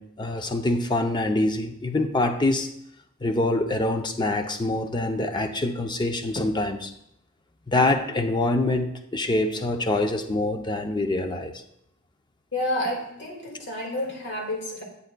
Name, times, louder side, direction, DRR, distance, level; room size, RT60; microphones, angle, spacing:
voice 1, 0.0-2.7 3.2-6.9 7.7-11.6, left 2 dB, 20° left, 6 dB, 0.6 m, -25 dB
voice 2, 12.5-14.8, left 1 dB, 60° left, 0 dB, 2.0 m, -29 dB
10.5 x 8.2 x 2.3 m, 0.77 s
head